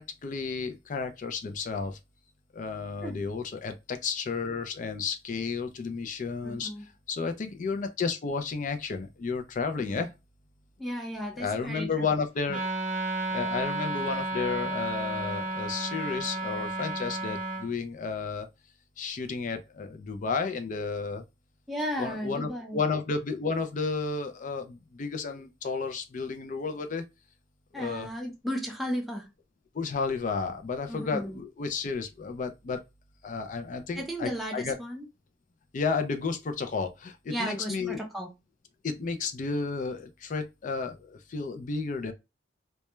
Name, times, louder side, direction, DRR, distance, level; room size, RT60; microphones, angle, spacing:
voice 1, 0.0-2.0 2.5-6.7 7.1-10.1 11.4-12.7 13.3-18.5 19.0-21.2 22.0-27.0 27.7-28.1 29.7-32.8 33.2-34.8 35.7-38.0 38.8-42.1, left 4 dB, 45° left, 0.4 m, -32 dB
voice 2, 6.4-6.9 9.8-10.0 10.8-12.1 21.7-22.8 27.7-29.2 30.9-31.4 33.9-35.0 37.3-38.3, equal, ahead, 0.6 m, -34 dB
Wind instrument woodwind instrument, 12.5-17.7, right 2 dB, 45° right, 0.5 m, -32 dB
2.2 x 2.2 x 3.0 m
head